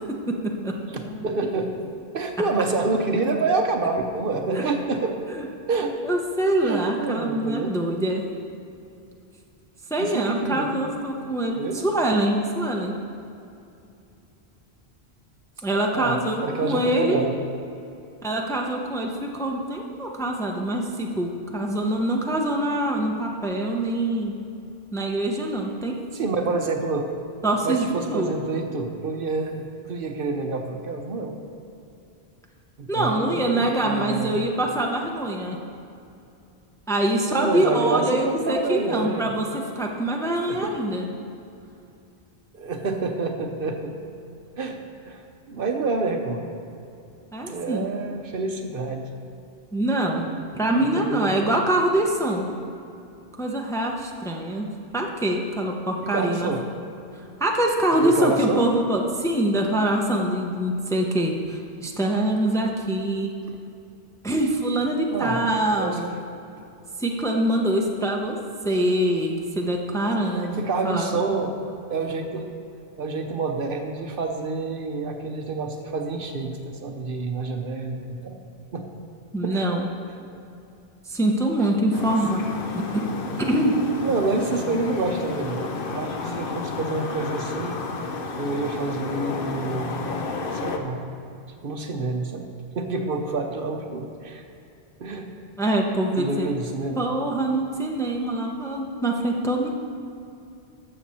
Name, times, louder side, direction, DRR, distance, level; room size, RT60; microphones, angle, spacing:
voice 1, 0.4-1.2 4.5-4.7 5.4-5.5 6.0-8.3 9.9-11.6 11.8-13.0 15.6-17.2 18.2-24.3 24.9-25.9 27.4-28.3 32.9-35.6 36.9-39.5 39.8-41.1 47.3-47.9 49.7-50.3 50.5-52.5 53.4-56.5 57.4-63.3 64.2-66.1 67.0-68.4 68.6-70.6 70.8-71.1 79.3-79.9 81.1-82.4 82.7-83.1 83.4-83.8 95.6-96.5 97.0-99.7, right 1 dB, 5° left, 0 dB, 0.7 m, -24 dB
voice 2, 0.9-1.8 2.1-5.2 5.7-6.0 6.6-7.8 9.9-10.9 11.6-11.8 15.9-17.4 26.1-27.1 27.6-31.4 32.8-34.4 37.3-39.3 40.5-40.7 42.5-44.0 44.6-44.8 45.1-46.5 47.5-49.1 50.7-51.6 56.0-56.6 57.3-57.4 58.0-58.7 65.1-65.5 65.8-66.0 70.3-71.6 71.9-72.5 73.0-78.4 78.7-78.9 79.4-79.7 81.9-82.1 84.0-87.8 88.4-90.2 90.5-91.0 91.5-94.4 95.0-95.3 96.2-97.0, right 3 dB, 60° right, 4 dB, 0.9 m, -28 dB
sound 1, 81.9-90.8, left 3 dB, 60° left, 0.9 m, -31 dB
13.5 x 6.8 x 4.3 m, 2.6 s
omnidirectional pair, 1.1 m